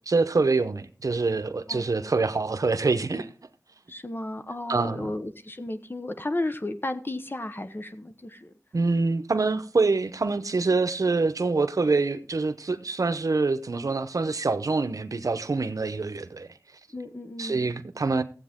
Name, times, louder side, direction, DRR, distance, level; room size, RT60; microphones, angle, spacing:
voice 1, 0.1-3.3 4.7-5.1 8.7-16.5 17.4-18.2, right 3 dB, 75° right, 0.8 m, -25 dB
voice 2, 3.9-8.5 16.9-17.7, left 2 dB, 40° left, 1.1 m, -33 dB
15.0 x 8.0 x 3.7 m
wide cardioid pair, 50°, 6 cm